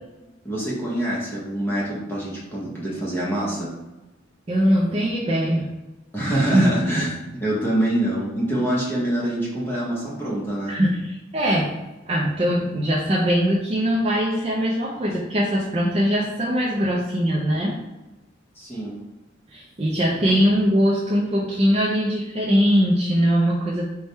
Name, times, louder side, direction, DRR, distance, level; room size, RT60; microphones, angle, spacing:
voice 1, 0.4-3.7 6.1-10.8 18.6-19.0, right 1 dB, 10° left, -6 dB, 0.8 m, -25 dB
voice 2, 4.5-5.7 6.3-6.6 7.0-7.1 10.7-11.7 12.1-17.7 19.5-23.9, equal, 30° right, -4 dB, 0.5 m, -21 dB
3.4 x 2.2 x 4.1 m, 1.1 s
head